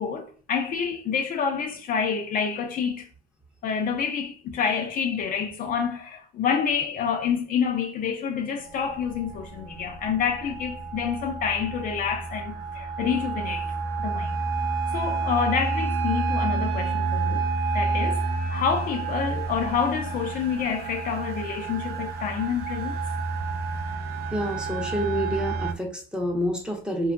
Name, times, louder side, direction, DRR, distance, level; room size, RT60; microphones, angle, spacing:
voice 1, 0.0-3.1 3.6-14.4 14.9-17.4 17.7-23.0, left 6 dB, 55° left, 0.5 m, -28 dB
sound 1, 8.6-25.7, right 4 dB, 75° right, 0.5 m, -30 dB
voice 2, 24.3-27.1, equal, 5° right, 0.7 m, -28 dB
2.7 x 2.2 x 2.5 m
cardioid pair, 110°, 17 cm